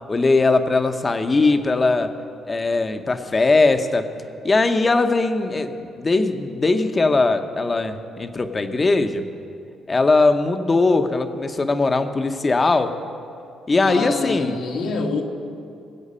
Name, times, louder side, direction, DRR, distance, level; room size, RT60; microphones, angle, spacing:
voice 1, 0.1-2.1 2.4-4.1 4.4-9.3 9.9-12.9 13.7-14.6, left 3 dB, 30° left, 7 dB, 0.9 m, -20 dB
voice 2, 13.8-15.2, left 4 dB, 85° left, 0 dB, 1.6 m, -25 dB
21.5 x 7.9 x 5.6 m, 2.5 s
cardioid pair, 90°, 0 cm